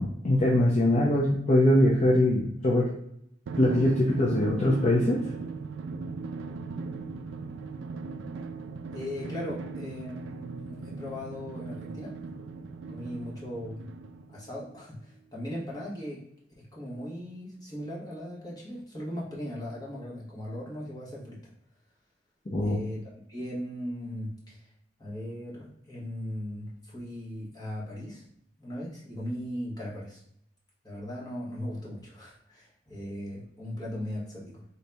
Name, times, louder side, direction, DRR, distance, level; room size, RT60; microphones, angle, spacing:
voice 1, 0.0-2.9 3.6-5.2 22.5-22.8, left 1 dB, 40° left, -3 dB, 0.6 m, -22 dB
Drum, 3.5-14.5, right 4 dB, 85° right, 0.3 m, -38 dB
voice 2, 8.9-12.2 12.9-13.9 14.3-16.2 16.6-21.4 22.6-23.0 23.3-24.7 25.0-28.2 28.6-30.2 30.8-34.6, equal, 20° left, -5 dB, 1.4 m, -38 dB
4.0 x 2.7 x 3.4 m, 0.72 s
head